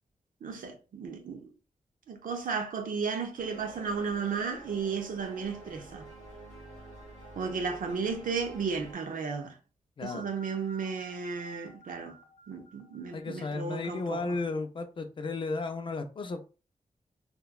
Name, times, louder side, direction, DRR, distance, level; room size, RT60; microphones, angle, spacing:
voice 1, 0.4-1.5 2.1-6.1 7.4-9.6 10.0-12.2 12.5-14.4, right 5 dB, 85° right, 0.6 m, -34 dB
sound 1, 3.4-8.9, right 2 dB, 55° right, 1.5 m, -49 dB
sound 2, 10.1-14.1, right 1 dB, 75° left, 0.8 m, -53 dB
voice 2, 13.1-16.4, left 3 dB, 40° left, 0.4 m, -34 dB
3.0 x 2.2 x 2.3 m
wide cardioid pair, 150°, 14 cm